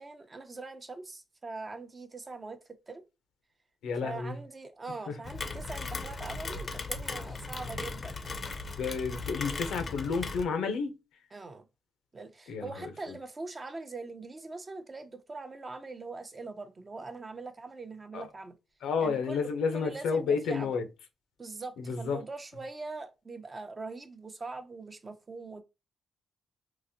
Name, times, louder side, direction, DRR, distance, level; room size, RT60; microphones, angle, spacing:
voice 1, 0.0-3.0 4.0-8.3 8.7-8.8 11.3-11.6 12.1-18.6 19.0-20.9 21.4-25.6, right 3 dB, 30° right, 0.6 m, -42 dB
voice 2, 3.8-4.4 5.1-5.2 8.8-10.9 12.5-13.2 18.1-18.3 18.8-20.9 21.8-22.2, left 5 dB, 90° left, 0.7 m, -31 dB
Rain, 5.2-10.4, left 3 dB, 40° left, 0.5 m, -37 dB
3.9 x 2.5 x 2.7 m
cardioid pair, 75°, 0 cm